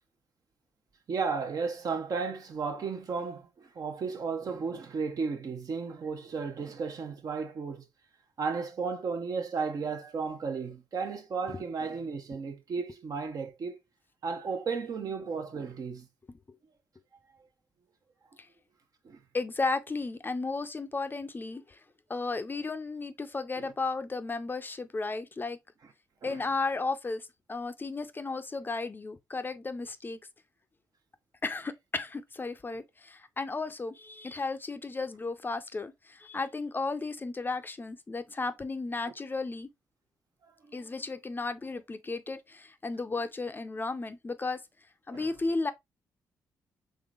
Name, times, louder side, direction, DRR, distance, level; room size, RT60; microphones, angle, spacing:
voice 1, 1.1-7.9 8.4-13.8 14.2-16.1 19.0-19.2 23.6-23.7 26.2-26.4 40.6-40.9 45.1-45.3, right 5 dB, 55° right, 0.8 m, -34 dB
voice 2, 19.3-21.8 22.1-25.6 26.2-30.2 31.4-39.7 40.7-44.6 45.1-45.7, left 3 dB, 25° left, 0.5 m, -34 dB
3.7 x 3.2 x 2.4 m
supercardioid pair, 60°, 7 cm